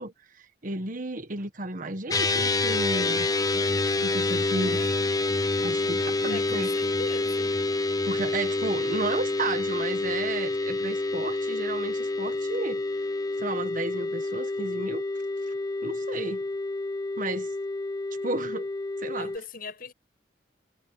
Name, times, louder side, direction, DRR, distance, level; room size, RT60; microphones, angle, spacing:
voice 1, 0.0-3.3 4.0-4.9 5.6-6.7 8.0-13.0 13.4-15.0 15.5-15.6 15.8-16.4 17.2-17.5 18.2-18.7 19.0-19.3, right 2 dB, 45° right, 1.4 m, -33 dB
sound 1, 2.1-19.4, left 2 dB, 20° left, 0.8 m, -28 dB
voice 2, 4.5-4.9 6.3-7.6 19.1-19.9, left 3 dB, 55° left, 7.6 m, -40 dB
head